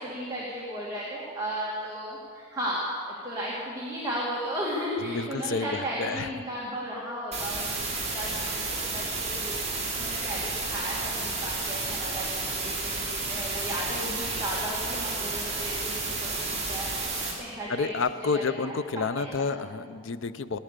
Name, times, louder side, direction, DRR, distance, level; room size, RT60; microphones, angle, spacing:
voice 1, 0.0-8.6 8.9-16.9 17.4-17.9 18.3-19.2 19.5-19.6, equal, 15° right, -6 dB, 2.2 m, -35 dB
voice 2, 5.0-6.3 17.7-20.6, left 4 dB, 60° left, 12 dB, 0.6 m, -30 dB
sound 1, 7.3-17.3, right 3 dB, 30° right, 3.3 m, -31 dB
18.5 x 10.0 x 6.7 m, 2.2 s
head